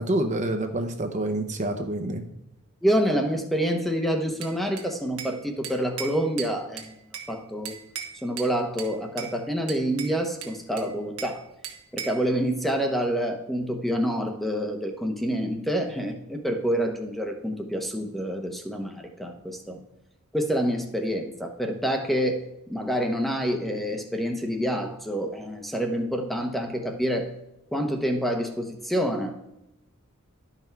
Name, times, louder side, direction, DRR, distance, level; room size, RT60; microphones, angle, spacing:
voice 1, 0.0-2.2, right 1 dB, 35° right, 5 dB, 0.8 m, -27 dB
voice 2, 2.8-6.9 7.3-7.7 8.2-11.5 11.9-19.8 20.3-22.4 22.7-27.3 27.7-29.4, equal, ahead, 4 dB, 0.9 m, -27 dB
Bell / Glass, 4.4-5.4 5.6-7.3 7.6-8.5 8.8-9.3 9.7-11.4 11.6-12.3, right 8 dB, 85° right, 1.5 m, -38 dB
11.5 x 5.8 x 4.5 m, 0.86 s
head